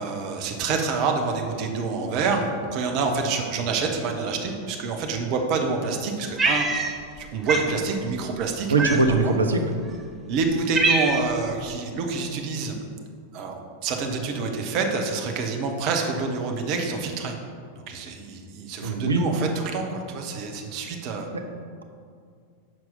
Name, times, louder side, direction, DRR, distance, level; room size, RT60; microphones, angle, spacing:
voice 1, 0.0-6.7 7.2-8.7 9.1-9.3 10.3-12.8 13.3-17.4 17.9-21.3, right 4 dB, 40° right, 3 dB, 0.9 m, -27 dB
Cat, 6.4-7.2 7.5-7.7 8.8-9.3 10.0-10.1 10.4-11.4, right 3 dB, 15° right, 0.7 m, -24 dB
voice 2, 8.7-9.6 18.8-19.2 21.3-21.4, right 3 dB, 75° right, 4 dB, 0.7 m, -21 dB
6.3 x 4.6 x 5.6 m, 2.1 s
figure-of-eight pair, 90°, 0 cm